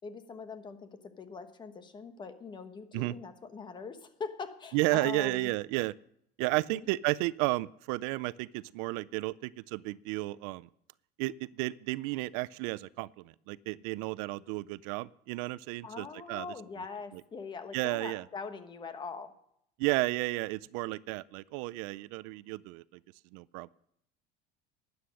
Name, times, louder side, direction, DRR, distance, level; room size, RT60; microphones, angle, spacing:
voice 1, 0.0-5.5 6.7-6.9 15.8-19.3, left 5 dB, 25° left, 10 dB, 1.1 m, -42 dB
voice 2, 4.7-5.9 6.4-10.7 11.2-16.5 17.7-18.2 19.8-23.0 23.3-23.7, right 20 dB, 80° right, 20 dB, 0.4 m, -32 dB
13.0 x 9.6 x 6.4 m, 0.72 s
cardioid pair, 150°, 20 cm